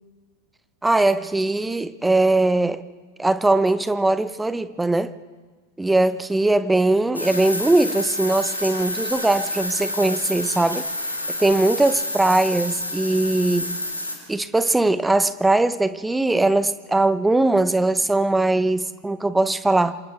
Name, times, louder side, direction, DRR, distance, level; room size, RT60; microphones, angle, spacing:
voice 1, 0.8-2.9 3.2-5.1 5.8-10.9 11.4-13.8 14.3-20.0, right 2 dB, 5° right, 0.9 m, -20 dB
sound 1, 7.1-14.1, left 1 dB, 85° left, 3.6 m, -28 dB
27.5 x 26.5 x 3.5 m
figure-of-eight pair, 90°, 0 cm